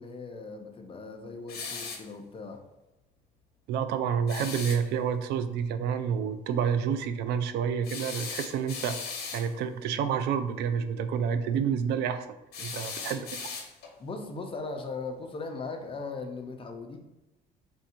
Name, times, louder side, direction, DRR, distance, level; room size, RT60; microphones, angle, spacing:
voice 1, 0.0-2.6 12.6-13.3 14.0-17.0, left 3 dB, 30° left, 4 dB, 0.7 m, -39 dB
sound 1, 1.5-2.1 4.3-4.8 7.8-9.5 12.5-14.0, left 5 dB, 70° left, 0.9 m, -38 dB
voice 2, 3.7-13.2, right 7 dB, 80° right, 10 dB, 0.4 m, -29 dB
3.5 x 2.7 x 4.3 m, 0.96 s
cardioid pair, 110°, 17 cm